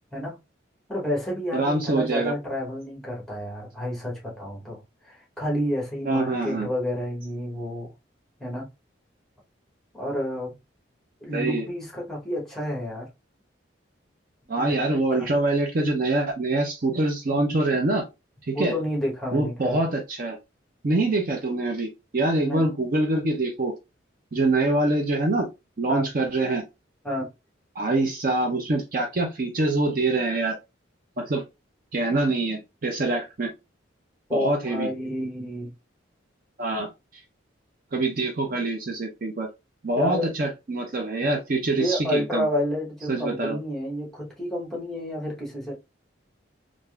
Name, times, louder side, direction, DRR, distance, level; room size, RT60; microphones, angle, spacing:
voice 1, 0.9-7.9 8.4-8.7 9.9-10.6 11.2-13.1 14.6-15.3 18.5-19.8 22.4-22.7 25.9-26.1 27.0-27.3 34.3-35.7 40.0-40.3 41.7-45.7, equal, ahead, 0.9 m, -30 dB
voice 2, 1.5-2.3 6.0-6.7 11.3-11.7 14.5-18.0 18.5-18.7 19.3-20.4 20.8-23.7 24.3-25.5 25.8-26.6 27.8-30.6 31.2-31.4 31.9-33.5 34.3-34.9 36.6-36.9 37.9-39.5 39.8-42.5 43.1-43.6, right 2 dB, 45° right, 0.5 m, -25 dB
3.4 x 2.5 x 2.3 m
head